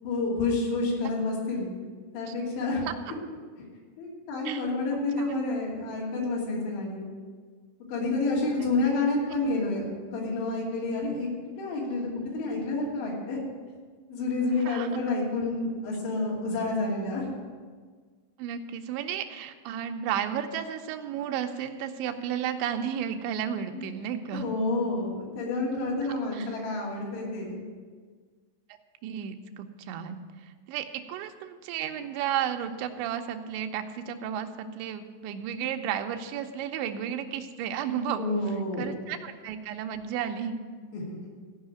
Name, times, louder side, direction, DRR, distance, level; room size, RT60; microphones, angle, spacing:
voice 1, 0.0-1.7 2.1-2.8 4.0-7.1 7.9-9.9 10.1-11.3 11.6-13.4 14.1-17.3 23.7-23.9 24.3-27.6 38.1-38.9 40.9-41.2, left 3 dB, 85° left, -3 dB, 5.0 m, -29 dB
voice 2, 4.5-5.3 8.6-8.7 14.6-14.9 18.4-24.5 26.3-26.5 29.0-38.2 38.8-40.6, right 9 dB, 85° right, 6 dB, 3.1 m, -33 dB
15.0 x 5.6 x 8.9 m, 1.5 s
omnidirectional pair, 5.0 m